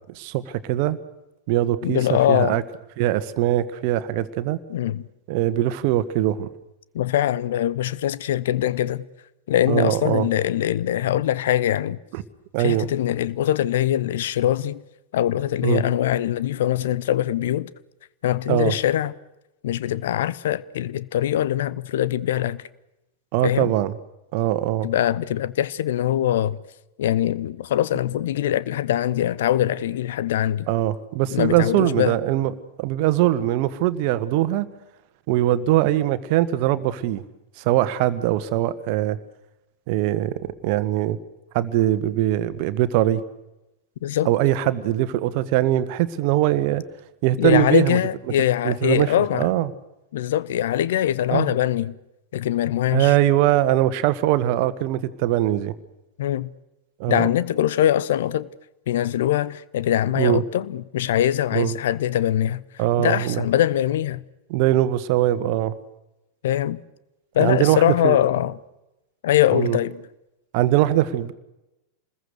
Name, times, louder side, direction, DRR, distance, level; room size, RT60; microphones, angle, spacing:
voice 1, 0.1-1.0 1.5-2.6 3.0-4.6 5.3-6.5 9.7-10.3 12.1-12.2 12.5-12.9 15.6-15.8 18.5-18.7 23.3-23.9 24.3-24.9 30.7-32.5 32.8-34.7 35.3-37.2 37.6-39.2 39.9-40.3 40.6-41.2 41.5-43.2 44.2-46.8 47.2-48.0 48.6-49.7 51.3-51.5 52.9-55.7 57.0-57.3 60.1-60.4 61.5-61.7 62.8-63.4 64.5-65.7 67.4-68.2 69.5-69.8 70.5-71.3, right 14 dB, 50° right, 1.5 m, -21 dB
voice 2, 1.8-2.6 4.7-5.0 6.9-9.0 9.5-12.0 12.6-14.8 15.1-17.7 18.2-19.1 19.6-22.6 23.4-23.7 24.8-26.6 27.0-30.7 31.3-32.1 44.0-44.3 47.4-49.5 50.1-51.9 52.3-53.1 56.2-56.5 57.1-58.5 58.9-62.6 63.0-64.2 66.4-66.8 67.3-68.6 69.2-70.0, left 12 dB, 60° left, 0.9 m, -22 dB
28.5 x 21.0 x 6.6 m
figure-of-eight pair, 90°, 0 cm